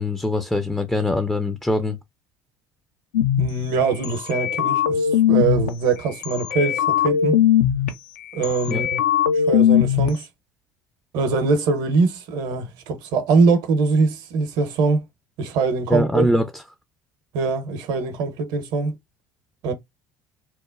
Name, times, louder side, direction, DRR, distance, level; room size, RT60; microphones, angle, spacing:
voice 1, 0.0-2.0 8.7-8.8 15.9-16.6, left 1 dB, 5° left, 0.4 m, -22 dB
sound 1, 3.1-3.5 4.0-5.7 6.2-7.9 8.4-10.1, left 9 dB, 70° left, 0.4 m, -20 dB
voice 2, 3.4-7.3 8.3-9.0 9.4-10.3 11.1-15.0 15.4-16.2 17.3-18.9 19.6-19.7, right 4 dB, 60° right, 0.7 m, -22 dB
2.9 x 2.1 x 2.3 m
figure-of-eight pair, 60°, 9 cm